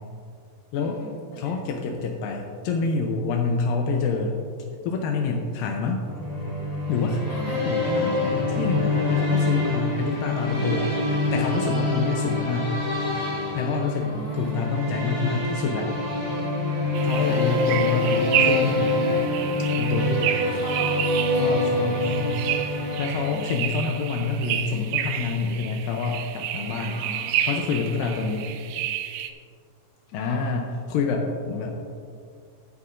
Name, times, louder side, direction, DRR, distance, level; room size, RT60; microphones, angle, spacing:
voice 1, 0.7-1.6 7.3-7.6 14.0-14.6 17.0-17.4 20.4-20.9 21.2-21.6 23.3-23.5 26.9-27.3 30.1-30.4, equal, 50° left, -6 dB, 3.7 m, -40 dB
voice 2, 1.4-4.4 4.9-6.0 6.9-7.3 7.7-11.0 11.3-12.7 13.5-15.9 17.0-19.3 19.8-20.2 21.3-22.4 22.7-27.0 27.4-28.5 30.1-31.8, left 4 dB, 85° left, 1 dB, 2.4 m, -27 dB
sound 1, 6.0-23.8, left 2 dB, 15° right, 1.4 m, -25 dB
sound 2, 16.9-29.3, right 11 dB, 85° right, 1.7 m, -30 dB
14.5 x 9.6 x 2.5 m, 2.2 s
omnidirectional pair, 3.9 m